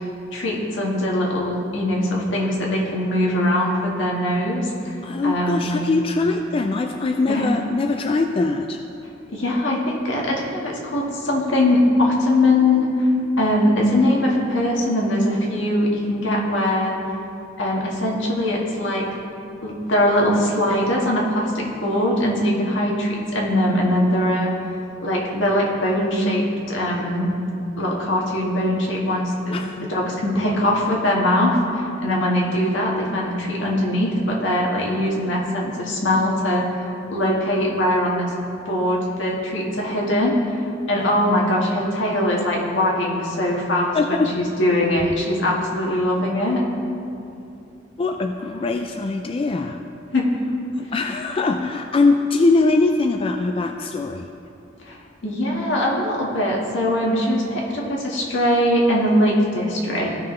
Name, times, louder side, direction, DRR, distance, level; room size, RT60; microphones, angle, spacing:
voice 1, 0.3-4.9 5.2-5.7 7.3-7.5 9.3-13.1 13.4-17.0 17.6-19.1 19.6-24.5 25.0-27.3 27.8-36.8 37.1-38.3 38.7-40.6 40.9-46.6 50.1-50.4 51.5-51.7 54.8-55.0 55.2-60.1, left 1 dB, 75° left, -3 dB, 1.7 m, -21 dB
voice 2, 5.0-8.8 29.5-29.8 43.9-44.3 48.0-49.8 50.7-54.3, left 3 dB, 30° left, 5 dB, 0.3 m, -22 dB
15.0 x 5.8 x 3.2 m, 2.7 s
head